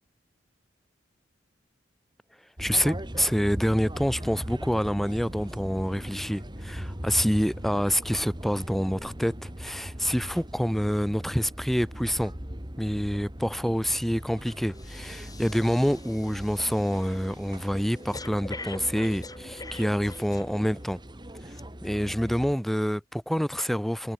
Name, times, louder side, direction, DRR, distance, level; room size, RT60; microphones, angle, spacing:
voice 1, 2.6-12.3 12.8-21.0 21.8-24.1, equal, ahead, 1.1 m, -27 dB
sound 1, 2.6-22.5, equal, 25° right, 3.5 m, -40 dB
Breathing, 13.9-14.1 14.5-20.9 21.5-21.6, left 2 dB, 20° left, 7.1 m, -44 dB
head